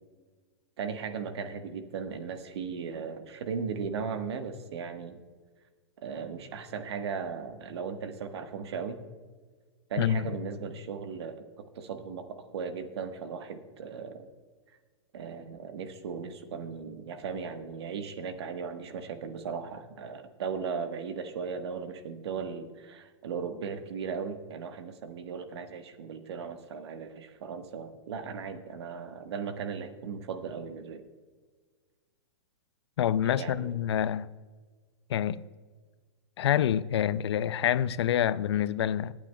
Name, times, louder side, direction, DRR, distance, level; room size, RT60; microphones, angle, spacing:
voice 1, 0.8-5.2 6.0-9.0 9.9-11.4 11.7-14.3 15.1-31.0 33.2-33.8, right 6 dB, 70° right, 1.4 m, -37 dB
voice 2, 33.0-34.3 35.1-35.4 36.4-39.2, left 10 dB, 70° left, 0.4 m, -27 dB
23.0 x 8.7 x 2.3 m
hypercardioid pair, 120°, 14 cm